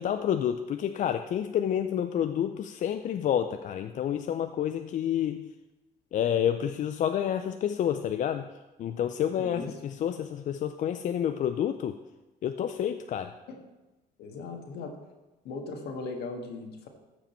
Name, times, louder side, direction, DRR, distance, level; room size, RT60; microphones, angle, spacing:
voice 1, 0.0-5.5 6.1-8.5 8.8-12.0 12.4-13.4, left 9 dB, 50° left, 8 dB, 0.4 m, -29 dB
voice 2, 9.3-9.7 13.5-13.6 14.2-15.0 15.4-16.9, left 3 dB, 70° left, 3 dB, 1.6 m, -38 dB
14.5 x 5.1 x 4.4 m, 1.1 s
cardioid pair, 110°, 17 cm